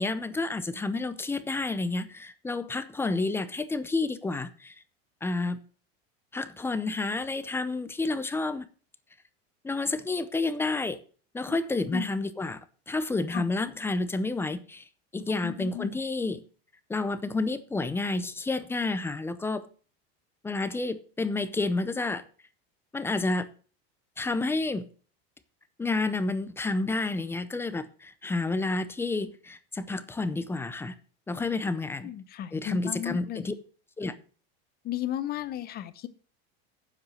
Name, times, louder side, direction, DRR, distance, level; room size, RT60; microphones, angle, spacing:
voice 1, 0.0-4.7 5.2-5.6 6.3-8.6 9.6-11.0 11.3-14.8 15.1-16.4 16.9-19.7 20.4-22.2 22.9-23.5 24.2-24.9 25.8-30.9 31.3-32.1 32.5-33.5 34.0-34.2, left 3 dB, 10° left, 0.5 m, -30 dB
voice 2, 15.4-15.9 31.8-33.4 34.8-36.1, left 12 dB, 30° left, 0.8 m, -34 dB
9.4 x 7.5 x 6.2 m
supercardioid pair, 155°, 31 cm